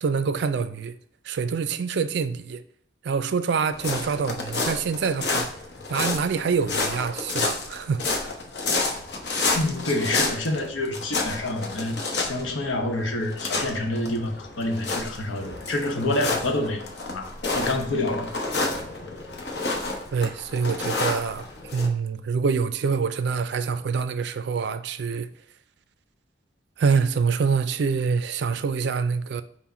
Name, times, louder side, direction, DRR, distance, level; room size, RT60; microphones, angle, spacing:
voice 1, 0.0-0.9 1.2-2.6 3.0-5.5 5.9-8.4 20.1-21.5 21.7-25.3 26.8-29.4, right 5 dB, 60° right, 0.3 m, -25 dB
sound 1, 3.7-21.9, left 3 dB, 60° left, 0.8 m, -30 dB
voice 2, 9.5-16.8 17.1-17.3 17.5-18.3, left 2 dB, 90° left, 0.9 m, -27 dB
5.9 x 2.1 x 4.2 m
head